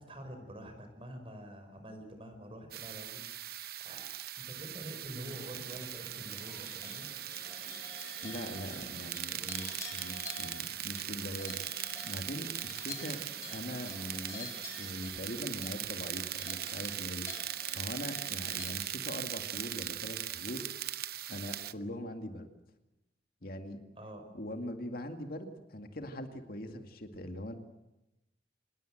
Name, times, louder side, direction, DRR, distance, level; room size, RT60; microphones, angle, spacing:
voice 1, 0.0-4.1 4.4-7.1 24.0-24.3, equal, 30° right, 6 dB, 5.8 m, -47 dB
sound 1, 2.7-21.7, right 12 dB, 60° right, 0.8 m, -40 dB
sound 2, 5.2-18.7, left 3 dB, 15° left, 7.7 m, -49 dB
voice 2, 8.2-13.2 13.5-20.7 21.3-22.5 23.4-23.8 24.3-27.5, left 1 dB, 55° left, 5 dB, 2.2 m, -42 dB
26.0 x 20.5 x 7.8 m, 0.95 s
head